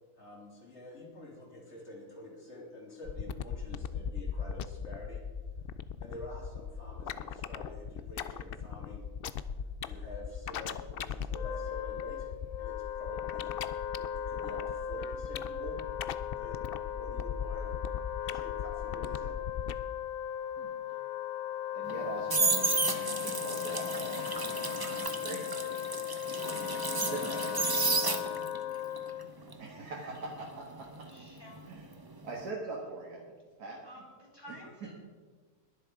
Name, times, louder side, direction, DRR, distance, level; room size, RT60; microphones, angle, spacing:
voice 1, 0.2-5.2 6.0-9.0 9.8-12.3 12.6-13.5 14.1-15.8 16.3-16.7 17.0-17.7 18.2-19.3, left 1 dB, 45° left, -3 dB, 3.7 m, -47 dB
sound 1, 3.1-19.8, left 7 dB, 85° left, 0.5 m, -38 dB
Wind instrument woodwind instrument, 11.2-29.4, left 11 dB, 65° left, 1.0 m, -37 dB
voice 2, 21.7-24.7 25.2-26.0 26.6-27.6 29.6-31.1 31.7-31.8 32.2-33.2 33.6-33.8, right 3 dB, 80° right, -3 dB, 2.2 m, -42 dB
sound 2, 21.9-28.6 29.0-31.9 32.1-32.5, right 3 dB, 25° right, 0.6 m, -32 dB
voice 3, 31.1-31.8 33.8-34.9, equal, 15° left, -4 dB, 3.8 m, -51 dB
21.0 x 7.5 x 4.9 m, 1.5 s
omnidirectional pair, 1.6 m